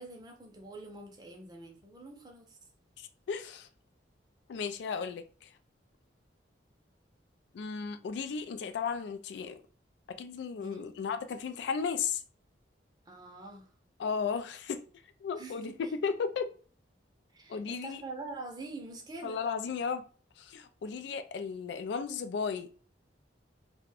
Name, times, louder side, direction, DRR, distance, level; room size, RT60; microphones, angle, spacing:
voice 1, 0.0-2.6 10.6-10.9 13.1-13.7 15.4-15.9 17.3-19.4, right 3 dB, 20° right, 0.5 m, -45 dB
voice 2, 3.0-3.7 4.5-5.5 7.5-9.6 10.1-12.2 14.0-14.8 15.2-16.5 17.5-18.0 19.2-20.0 20.4-22.7, left 6 dB, 70° left, 0.3 m, -35 dB
2.4 x 2.2 x 3.3 m
head